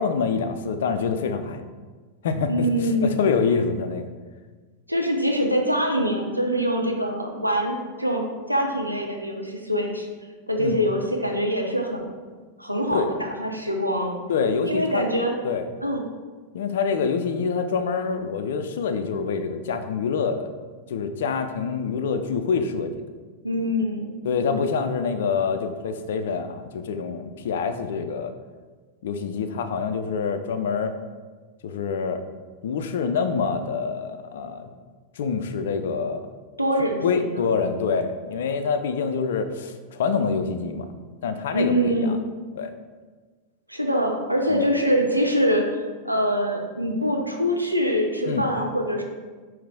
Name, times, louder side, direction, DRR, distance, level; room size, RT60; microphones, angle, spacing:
voice 1, 0.0-1.6 2.2-2.7 3.0-4.1 10.6-10.8 12.9-13.1 14.3-15.0 15.4-15.7 16.5-20.5 20.9-23.0 24.2-28.3 29.0-30.9 31.6-32.2 32.6-34.7 35.2-36.3 37.0-40.9 41.2-42.2 42.6-42.7 44.5-44.6 48.3-48.4, left 5 dB, 60° left, 8 dB, 0.4 m, -26 dB
voice 2, 2.5-3.2 4.9-10.1 10.5-12.1 12.6-14.2 14.6-15.4 15.8-16.0 23.4-24.2 36.6-37.4 41.5-42.2 43.7-49.0, equal, 90° right, 1 dB, 0.6 m, -24 dB
4.8 x 3.1 x 3.5 m, 1.4 s
figure-of-eight pair, 90°, 0 cm